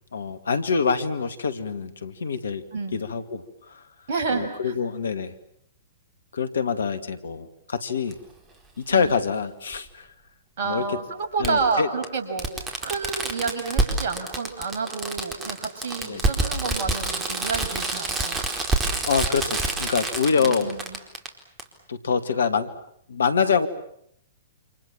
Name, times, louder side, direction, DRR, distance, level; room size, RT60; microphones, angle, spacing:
voice 1, 0.1-2.7 2.9-3.8 4.3-5.3 6.3-8.2 8.8-10.1 10.6-10.9 11.4-11.9 16.0-16.2 19.0-20.7 21.9-22.7 23.1-23.7, left 5 dB, 70° left, 12 dB, 2.3 m, -25 dB
voice 2, 4.1-4.8 8.9-9.1 10.6-18.4 20.4-21.0, right 4 dB, 55° right, 4 dB, 6.4 m, -29 dB
Fireworks, 8.1-8.2 9.7-9.8 11.4-11.5 12.0-12.1 12.4-21.3 21.6-21.7, right 3 dB, 20° right, 4.4 m, -27 dB
29.0 x 27.5 x 7.4 m, 0.72 s
figure-of-eight pair, 115°, 0 cm